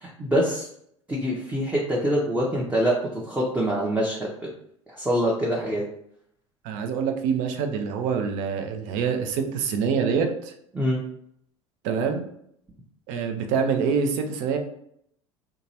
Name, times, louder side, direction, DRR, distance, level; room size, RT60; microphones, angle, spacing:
voice 1, 0.0-0.7 1.1-4.3 4.9-5.8 10.7-11.0, equal, 10° right, -3 dB, 0.6 m, -25 dB
voice 2, 6.6-10.5 11.8-12.2 13.1-14.6, right 6 dB, 55° right, 5 dB, 0.5 m, -25 dB
2.8 x 2.3 x 2.8 m, 0.71 s
figure-of-eight pair, 70°, 15 cm